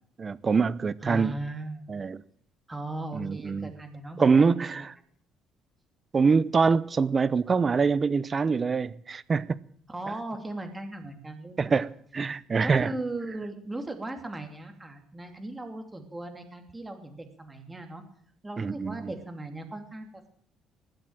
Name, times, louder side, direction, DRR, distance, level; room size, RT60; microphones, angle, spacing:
voice 1, 0.2-1.3 1.9-2.2 3.1-3.7 4.2-4.9 6.1-9.6 11.6-12.9 18.6-19.1, right 5 dB, 30° right, 0.7 m, -24 dB
voice 2, 1.0-1.8 2.7-4.7 9.9-11.9 12.6-18.0 18.4-20.3, right 2 dB, 15° right, 2.8 m, -38 dB
20.0 x 7.9 x 8.9 m
cardioid pair, 105°, 0 cm